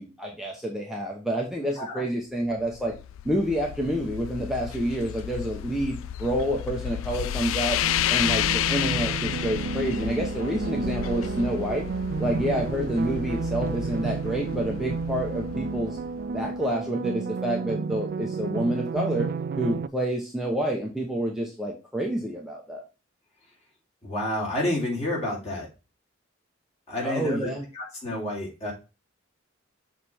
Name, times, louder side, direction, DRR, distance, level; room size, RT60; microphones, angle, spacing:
voice 1, 0.0-2.9 3.2-7.8 8.1-11.9 12.2-16.0 16.3-19.3 19.6-22.8 27.0-27.6, right 1 dB, ahead, -2 dB, 0.9 m, -28 dB
sound 1, 2.5-16.6, left 12 dB, 70° left, 0.3 m, -32 dB
sound 2, 7.8-19.9, right 4 dB, 50° right, 0.3 m, -31 dB
voice 2, 24.0-25.7 26.9-28.7, left 1 dB, 30° left, -3 dB, 2.6 m, -29 dB
6.6 x 3.3 x 4.3 m, 0.31 s
head